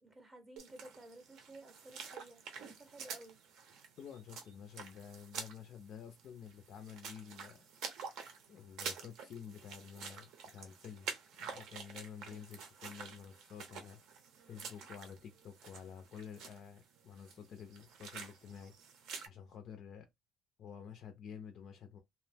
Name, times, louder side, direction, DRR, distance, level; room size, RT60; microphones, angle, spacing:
voice 1, 0.0-3.4, right 1 dB, 15° right, 0.7 m, -55 dB
sound 1, 0.6-19.3, right 5 dB, 60° right, 0.6 m, -48 dB
voice 2, 4.0-7.7 8.5-11.1 11.4-14.0 14.5-18.7 19.3-20.1 20.6-22.0, left 7 dB, 45° left, 0.4 m, -50 dB
2.7 x 2.0 x 3.2 m
cardioid pair, 160°, 0 cm